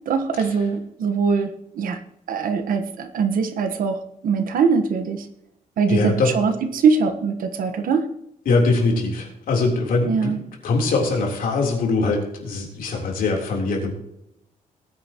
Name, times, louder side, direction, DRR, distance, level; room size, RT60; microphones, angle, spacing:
voice 1, 0.0-2.0 2.3-4.0 4.2-5.3 5.8-8.0 10.0-10.4, right 5 dB, 90° right, 7 dB, 1.3 m, -22 dB
voice 2, 5.9-6.3 8.5-10.3 10.6-13.9, left 3 dB, 85° left, 0 dB, 3.6 m, -22 dB
19.5 x 9.6 x 3.0 m, 0.81 s
wide cardioid pair, 150°, 14 cm